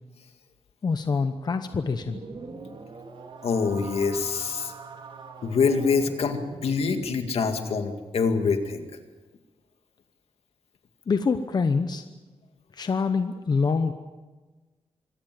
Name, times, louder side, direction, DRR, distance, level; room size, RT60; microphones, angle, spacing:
voice 1, 0.8-2.2 11.1-12.0 12.7-13.9, left 4 dB, 45° left, 9 dB, 0.9 m, -25 dB
sound 1, 1.7-7.6, right 4 dB, 55° right, 2.3 m, -43 dB
voice 2, 3.4-4.7 5.4-8.9, left 5 dB, 80° left, 6 dB, 2.1 m, -25 dB
24.5 x 17.0 x 7.6 m, 1.3 s
wide cardioid pair, 155°, 10 cm